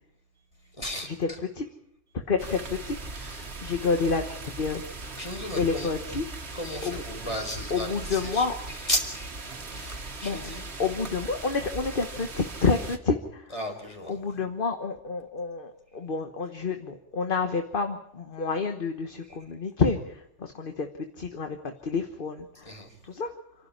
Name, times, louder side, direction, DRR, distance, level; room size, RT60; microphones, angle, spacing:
voice 1, 0.8-1.4 3.1-3.5 5.2-5.9 6.5-9.3 9.7-10.8 13.5-14.2 19.3-19.4 22.6-23.0, left 1 dB, 25° left, 3 dB, 4.5 m, -35 dB
voice 2, 2.3-3.3 3.6-4.8 5.6-6.2 6.8-6.9 7.7-8.5 10.2-10.5 10.8-13.5 14.1-20.9 21.2-22.8 23.1-23.3, left 4 dB, 45° left, 6 dB, 1.4 m, -29 dB
sound 1, 2.4-13.0, right 3 dB, 60° right, 2.0 m, -39 dB
28.0 x 12.0 x 9.9 m, 0.79 s
omnidirectional pair, 1.2 m